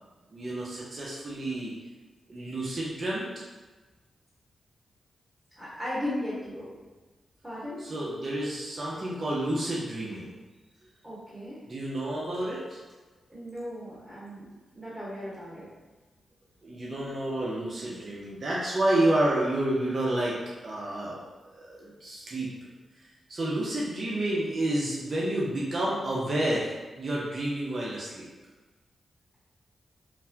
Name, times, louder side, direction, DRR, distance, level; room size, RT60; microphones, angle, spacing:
voice 1, 0.3-1.7 2.3-3.2 7.8-10.3 11.7-12.8 16.6-20.4 20.6-21.2 21.5-22.5 23.3-28.3, right 1 dB, 50° right, -5 dB, 0.7 m, -29 dB
voice 2, 5.5-6.7 7.4-7.9 11.0-11.6 13.3-14.5 14.7-15.7, left 1 dB, 20° right, -9 dB, 1.3 m, -36 dB
3.9 x 2.2 x 2.8 m, 1.2 s
cardioid pair, 70°, 0 cm